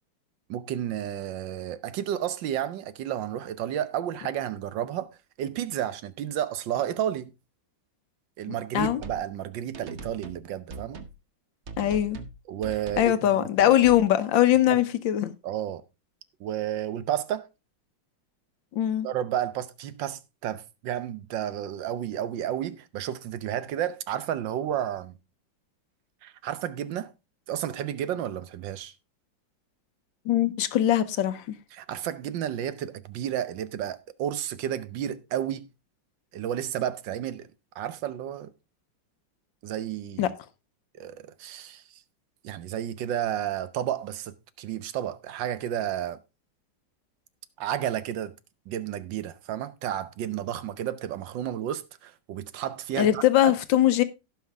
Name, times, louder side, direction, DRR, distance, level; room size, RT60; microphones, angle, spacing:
voice 1, 0.5-5.1 5.4-7.3 8.4-11.0 12.5-13.5 14.7-14.8 15.4-15.8 16.4-17.5 19.0-25.2 26.2-27.1 27.5-28.9 31.7-35.7 36.3-37.5 37.7-38.5 39.6-40.3 41.0-41.8 42.4-46.2 47.6-48.3 48.7-53.5, right 10 dB, 75° right, 1.5 m, -31 dB
sound 1, 8.8-9.3 9.7-10.4 10.7-11.2 11.7-12.4 12.6-13.1 13.6-14.1, right 3 dB, 45° right, 1.1 m, -40 dB
voice 2, 11.8-12.2 13.0-15.3 18.7-19.1 30.3-31.6 40.2-40.3 53.0-54.0, left 12 dB, 75° left, 1.6 m, -21 dB
17.0 x 5.8 x 3.4 m
omnidirectional pair, 2.1 m